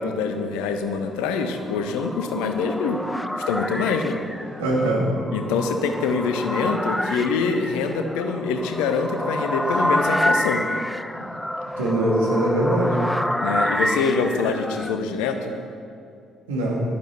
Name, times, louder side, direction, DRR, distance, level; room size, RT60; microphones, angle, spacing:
voice 1, 0.0-3.0 3.4-4.2 5.3-10.6 13.4-15.5, left 5 dB, 65° left, 7 dB, 0.8 m, -25 dB
sound 1, 1.5-15.0, equal, 5° left, 0.5 m, -28 dB
voice 2, 4.6-5.1 11.8-13.0 16.5-16.8, right 1 dB, 75° right, -3 dB, 2.0 m, -22 dB
11.0 x 10.5 x 4.4 m, 2.5 s
figure-of-eight pair, 45°, 0 cm